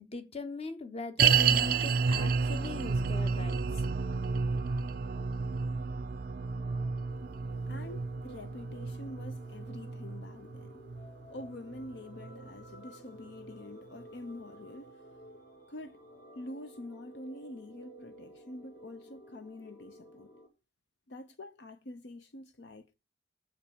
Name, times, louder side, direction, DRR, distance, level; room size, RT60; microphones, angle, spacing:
voice 1, 0.0-3.6, left 3 dB, 30° left, 1.0 m, -40 dB
sound 1, 1.2-20.5, right 1 dB, 45° left, 2.0 m, -53 dB
sound 2, 1.2-12.5 12.7-12.8 13.5-13.6, right 5 dB, 50° right, 0.4 m, -31 dB
voice 2, 7.7-10.8 11.3-15.0 15.7-16.0 16.3-20.3 21.1-23.0, left 1 dB, 65° left, 0.6 m, -46 dB
7.3 x 5.3 x 7.0 m
head